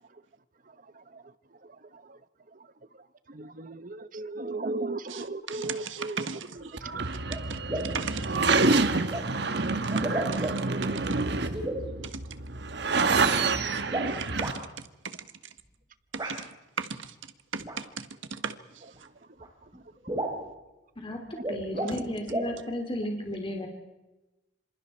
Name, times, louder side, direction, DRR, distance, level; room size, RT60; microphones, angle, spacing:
voice 1, 3.3-6.3 6.6-6.7 6.9-7.1 10.7-11.0 11.9-12.1 21.7-21.9, right 2 dB, 45° right, 1.0 m, -36 dB
voice 2, 5.1-6.8 7.5-8.7 9.8-10.5 12.1-12.2 14.0-14.7 15.0-15.2 16.1-16.5 16.8-17.1 17.5-18.8, right 5 dB, 90° right, 1.5 m, -37 dB
sound 1, 6.6-6.7 7.3-7.4 7.7-8.1 9.1-9.2 9.9-10.8 11.5-11.8 13.8-14.5 16.2-16.4 17.6-17.8 19.0-19.1 19.4-19.5 19.7-19.8 20.1-20.4 21.3-22.0 22.3-22.5, right 1 dB, 20° right, 4.0 m, -32 dB
sound 2, 6.8-14.5, right 3 dB, 60° right, 1.3 m, -27 dB
voice 3, 21.5-23.7, left 1 dB, 25° left, 3.0 m, -33 dB
26.5 x 26.0 x 4.5 m
head